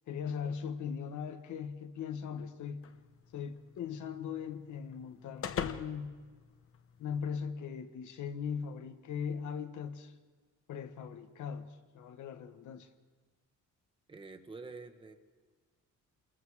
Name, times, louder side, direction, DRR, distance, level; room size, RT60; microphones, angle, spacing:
voice 1, 0.1-2.9 3.3-6.2 7.0-10.1 10.7-12.9, left 7 dB, 70° left, 1.3 m, -39 dB
sound 1, 2.8-7.2, left 7 dB, 45° left, 1.0 m, -44 dB
voice 2, 14.1-15.1, right 3 dB, 15° right, 1.4 m, -47 dB
28.0 x 22.0 x 4.8 m
cardioid pair, 160°, 31 cm